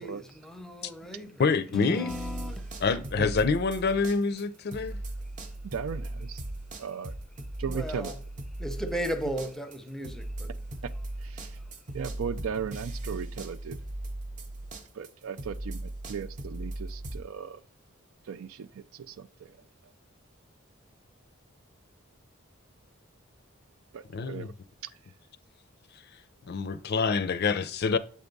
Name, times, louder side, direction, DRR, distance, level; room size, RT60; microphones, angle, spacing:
voice 1, 0.0-2.8 7.7-8.2 8.6-10.6 10.9-11.0, equal, ahead, 0.6 m, -36 dB
voice 2, 1.4-2.1 2.8-5.0 24.1-24.5 26.5-28.0, left 4 dB, 50° left, 0.5 m, -26 dB
sound 1, 2.1-4.4 4.7-17.2, right 1 dB, 40° right, 0.7 m, -38 dB
voice 3, 5.6-6.4 6.8-7.1 7.6-8.1 10.8-10.9 11.2-11.5 11.9-13.8 14.9-17.6 18.3-19.6 23.9-24.5, right 6 dB, 85° right, 0.4 m, -37 dB
7.3 x 3.5 x 5.2 m
head